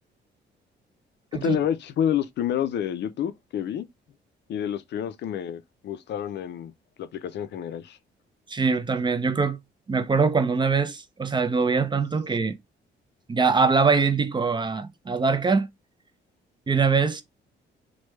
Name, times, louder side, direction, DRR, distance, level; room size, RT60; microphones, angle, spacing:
voice 1, 1.3-3.9 4.5-6.7 7.0-8.0, left 9 dB, 60° left, 0.4 m, -28 dB
voice 2, 8.5-9.6 9.9-12.6 13.3-15.7 16.7-17.2, right 4 dB, 25° right, 0.4 m, -23 dB
3.2 x 2.2 x 3.1 m
cardioid pair, 90°, 20 cm